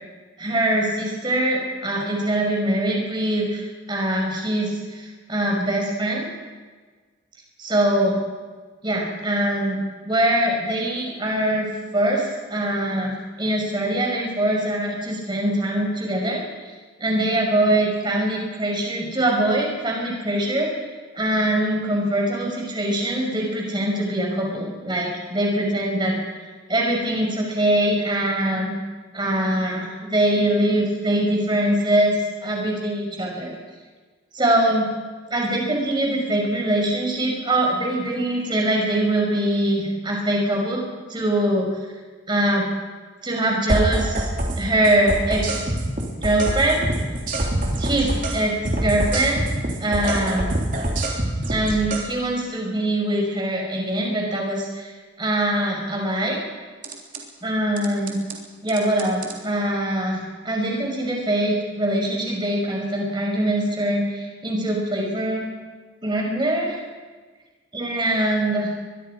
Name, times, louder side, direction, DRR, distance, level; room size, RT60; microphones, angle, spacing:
voice 1, 0.4-6.3 7.6-8.2 8.8-16.4 17.0-20.7 21.1-26.2 26.7-28.7 29.1-32.2 32.4-33.5 34.3-34.9 35.3-40.8 41.1-41.8 42.3-42.7 43.2-44.3 44.6-45.7 46.2-46.8 47.8-49.4 49.8-50.5 51.5-54.9 55.2-56.4 57.4-58.2 58.6-65.5 66.0-66.8 67.7-68.7, right 1 dB, 25° right, 0 dB, 5.8 m, -23 dB
sound 1, 43.7-44.6 44.8-48.4 48.7-52.0 56.8-57.2 57.8-58.4 58.7-59.4, right 1 dB, 45° right, 3.5 m, -25 dB
23.5 x 22.0 x 5.0 m, 1.4 s
head